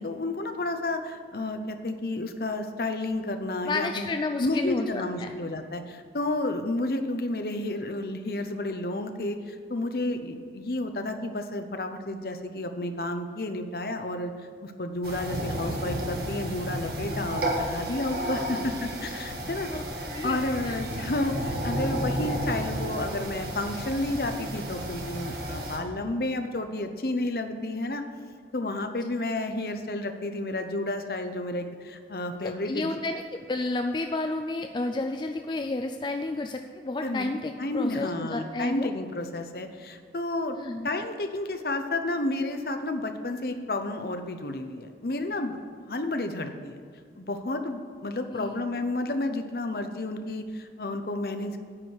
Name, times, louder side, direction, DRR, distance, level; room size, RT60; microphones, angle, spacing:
voice 1, 0.0-4.1 4.4-14.3 14.6-19.7 20.2-28.0 28.5-32.9 37.0-37.3 37.6-40.6 40.8-45.6 45.9-46.8 47.2-51.6, left 2 dB, 55° left, 7 dB, 0.7 m, -31 dB
voice 2, 3.6-5.3 19.7-20.8 32.4-38.9 40.5-40.9 48.3-48.6, left 2 dB, 25° left, 5 dB, 0.3 m, -31 dB
sound 1, 15.0-25.8, right 1 dB, 60° right, 1.5 m, -32 dB
9.7 x 4.8 x 7.9 m, 2.1 s
head